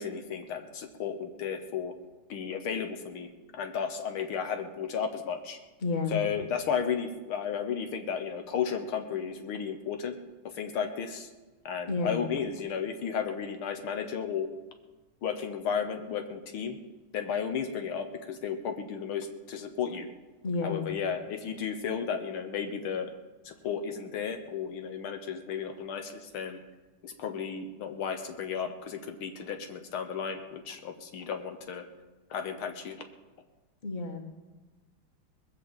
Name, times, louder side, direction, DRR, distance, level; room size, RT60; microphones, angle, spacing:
voice 1, 0.0-1.9 2.3-5.6 6.1-10.2 10.5-11.3 11.7-14.5 15.2-16.8 17.1-20.1 20.6-23.1 23.4-26.6 27.0-31.9 32.3-33.0, left 7 dB, 75° left, 7 dB, 1.9 m, -33 dB
voice 2, 5.8-6.2 11.9-12.2 20.4-20.8 33.8-34.2, left 3 dB, 25° left, 2 dB, 1.6 m, -30 dB
20.5 x 6.8 x 7.7 m, 1.2 s
omnidirectional pair, 2.3 m